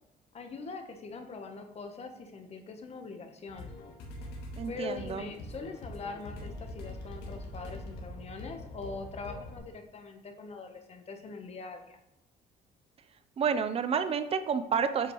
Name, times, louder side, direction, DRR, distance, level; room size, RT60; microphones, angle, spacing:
voice 1, 0.3-3.7 4.7-12.0, left 4 dB, 40° left, 5 dB, 1.0 m, -42 dB
sound 1, 3.5-9.6, left 1 dB, 85° left, 1.5 m, -43 dB
voice 2, 4.6-5.3 13.4-15.1, right 6 dB, 35° right, 11 dB, 0.6 m, -30 dB
8.1 x 4.9 x 3.1 m, 0.89 s
cardioid pair, 110°, 17 cm